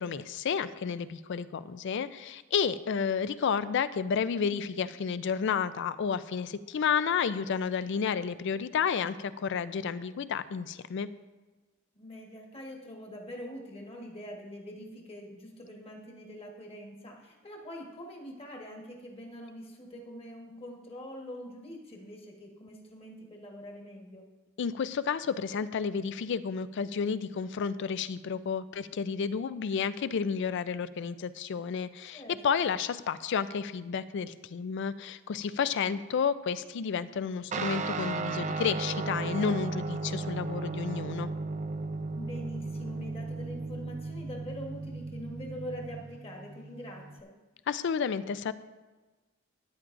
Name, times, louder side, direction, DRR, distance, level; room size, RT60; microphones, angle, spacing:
voice 1, 0.0-11.1 24.6-41.3 47.7-48.5, left 6 dB, 60° left, 15 dB, 0.4 m, -31 dB
voice 2, 11.9-24.2 32.1-32.7 42.1-47.3, equal, 30° left, 0 dB, 1.3 m, -44 dB
Guitar, 37.5-47.2, right 3 dB, 35° right, 0.4 m, -35 dB
13.0 x 9.9 x 2.5 m, 1.2 s
head